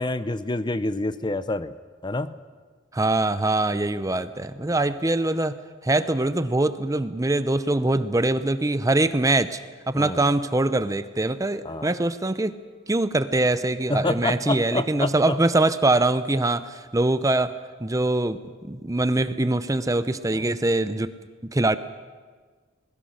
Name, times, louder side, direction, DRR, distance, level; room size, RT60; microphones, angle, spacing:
voice 1, 0.0-1.7 2.0-2.3 4.6-4.7 9.9-10.2 11.6-11.9 13.9-15.4 20.3-20.5, left 2 dB, 20° left, 13 dB, 0.7 m, -27 dB
voice 2, 2.9-9.6 9.9-12.6 12.9-18.4 18.6-21.1 21.4-21.8, right 2 dB, 15° right, 13 dB, 0.6 m, -23 dB
27.0 x 20.5 x 6.5 m, 1.5 s
head